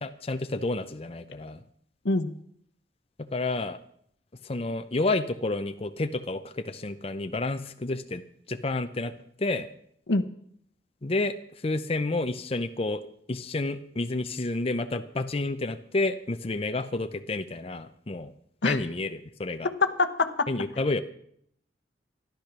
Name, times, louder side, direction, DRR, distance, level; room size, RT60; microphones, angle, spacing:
voice 1, 0.0-1.6 3.2-3.8 4.4-8.2 8.5-9.1 9.4-9.7 11.0-13.0 13.3-18.3 18.6-19.7 20.5-21.0, left 2 dB, 35° left, 9 dB, 0.6 m, -30 dB
voice 2, 19.6-20.5, left 3 dB, 80° left, 9 dB, 1.0 m, -25 dB
13.5 x 12.0 x 6.0 m, 0.67 s
head